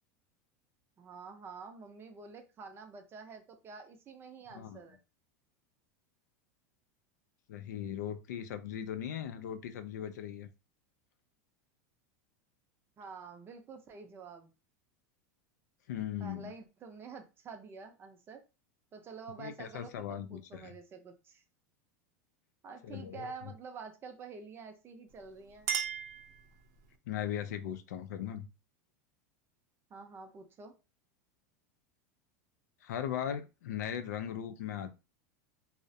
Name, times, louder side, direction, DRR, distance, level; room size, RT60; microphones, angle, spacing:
voice 1, 1.0-5.0 13.0-14.5 16.2-18.4 18.9-21.4 22.6-25.7 29.9-30.7, right 5 dB, 25° right, 6 dB, 0.5 m, -48 dB
voice 2, 7.5-10.5 15.9-16.5 19.4-20.7 22.8-23.3 27.1-28.5 32.8-35.0, left 9 dB, 90° left, 10 dB, 0.4 m, -38 dB
Chink clink, 25.1-27.0, right 8 dB, 75° right, 0.5 m, -38 dB
2.3 x 2.0 x 2.6 m, 0.29 s
supercardioid pair, 130°, 9 cm